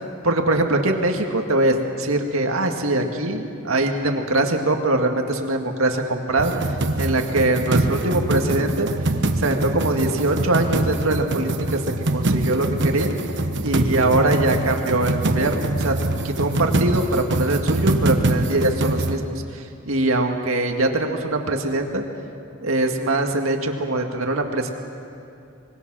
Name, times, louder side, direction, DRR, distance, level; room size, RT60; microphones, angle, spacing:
voice 1, 0.2-8.9 9.4-13.1 13.6-16.0 16.2-22.0 22.6-24.7, right 2 dB, 80° right, 3 dB, 2.0 m, -22 dB
sound 1, 6.4-19.1, right 2 dB, 60° right, 1.2 m, -23 dB
25.0 x 22.5 x 6.3 m, 2.6 s
head